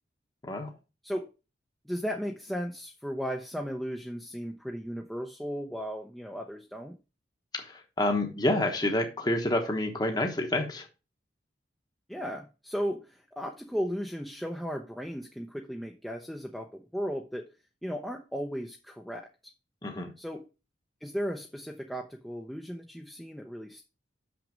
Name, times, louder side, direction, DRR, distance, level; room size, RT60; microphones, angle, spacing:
voice 1, 1.9-7.0 12.1-17.5 17.8-19.3 20.2-20.5 21.0-23.8, equal, ahead, 0.6 m, -35 dB
voice 2, 7.5-10.9 19.8-20.1, left 1 dB, 20° left, 1.1 m, -28 dB
6.5 x 6.1 x 5.1 m
head